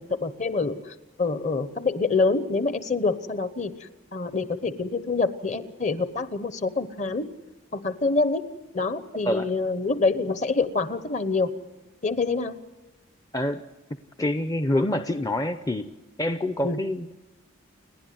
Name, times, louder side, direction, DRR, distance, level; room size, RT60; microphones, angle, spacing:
voice 1, 0.0-7.3 7.7-8.4 8.7-11.5 12.0-12.6 16.6-16.8, left 3 dB, 35° left, 13 dB, 1.0 m, -26 dB
voice 2, 14.2-15.9 16.2-17.2, left 1 dB, 15° left, 8 dB, 0.6 m, -26 dB
30.0 x 11.5 x 9.4 m, 1.2 s
head